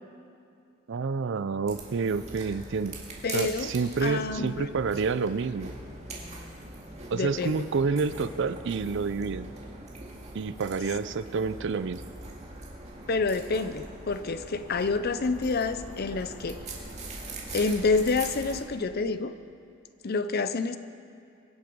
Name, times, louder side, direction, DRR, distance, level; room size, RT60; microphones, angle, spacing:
voice 1, 0.9-3.0 3.3-5.7 7.1-9.5 10.3-12.0, right 4 dB, 60° right, 15 dB, 0.4 m, -28 dB
sound 1, 1.7-18.6, right 2 dB, 35° right, 2.2 m, -42 dB
voice 2, 3.2-3.7 4.0-4.7 7.1-7.6 13.1-16.6 17.5-19.4 20.0-20.8, left 4 dB, 50° left, 12 dB, 0.6 m, -28 dB
23.5 x 8.0 x 5.3 m, 2.6 s
head